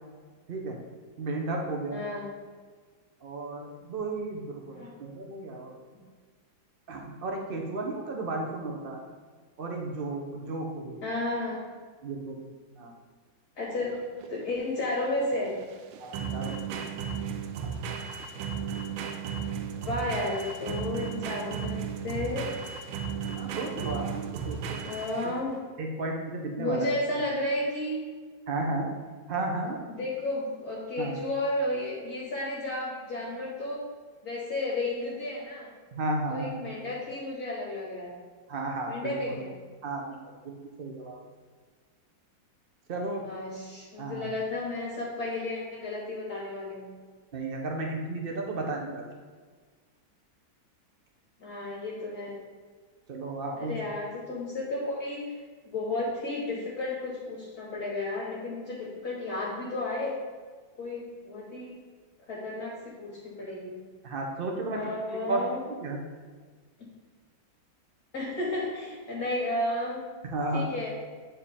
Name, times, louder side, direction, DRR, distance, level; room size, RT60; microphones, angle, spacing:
voice 1, 0.5-0.8 1.2-2.0 3.2-5.7 6.9-9.0 9.6-11.0 12.0-12.4 12.8-12.9 16.0-16.8 23.3-24.8 25.2-25.3 25.8-26.9 28.5-29.0 29.3-29.8 31.0-31.2 35.9-36.6 38.5-39.4 39.8-40.1 40.4-41.2 42.9-43.3 44.0-44.3 47.3-49.0 53.1-53.7 64.0-64.8 65.3-65.4 65.8-66.0 70.2-70.7, right 2 dB, 55° right, 1 dB, 0.6 m, -33 dB
voice 2, 1.9-2.3 4.7-5.0 5.9-6.0 11.0-11.6 13.6-14.0 14.3-15.5 19.8-22.5 24.8-25.6 26.6-28.0 29.9-33.8 34.2-35.7 36.3-38.1 38.9-39.5 43.2-46.9 51.4-52.4 53.6-55.3 55.6-60.2 60.8-61.8 62.3-63.8 64.7-65.6 66.8-66.9 68.1-70.0 70.5-70.9, left 2 dB, 55° left, -5 dB, 1.6 m, -33 dB
sound 1, 13.9-25.5, right 7 dB, 80° right, 1.3 m, -35 dB
8.8 x 3.8 x 4.2 m, 1.5 s
omnidirectional pair, 2.1 m